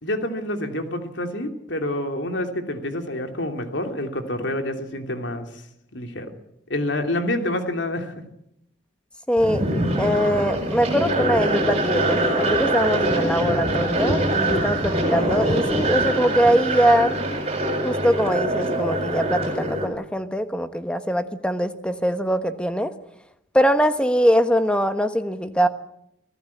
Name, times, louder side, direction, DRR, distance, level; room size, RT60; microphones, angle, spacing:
voice 1, 0.0-5.6 5.9-6.3 6.7-8.1, left 1 dB, 75° left, 5 dB, 3.1 m, -27 dB
voice 2, 9.3-9.6 10.0-17.1 17.8-22.9 23.5-25.7, equal, 5° left, 9 dB, 1.2 m, -22 dB
sound 1, 9.4-19.9, right 1 dB, 30° right, 7.6 m, -23 dB
25.0 x 17.0 x 8.6 m, 0.77 s
head